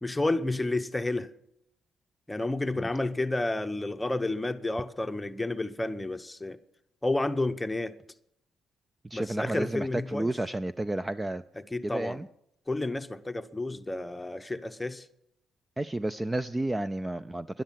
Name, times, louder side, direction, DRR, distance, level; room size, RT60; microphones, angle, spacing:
voice 1, 0.0-1.3 2.3-6.6 7.0-8.0 9.1-10.3 11.6-12.2 12.7-15.0, left 2 dB, 10° left, 0.9 m, -31 dB
voice 2, 9.1-11.4 11.8-12.3 15.8-17.6, right 1 dB, 15° right, 0.4 m, -31 dB
11.5 x 11.0 x 7.4 m
cardioid pair, 90°, 0 cm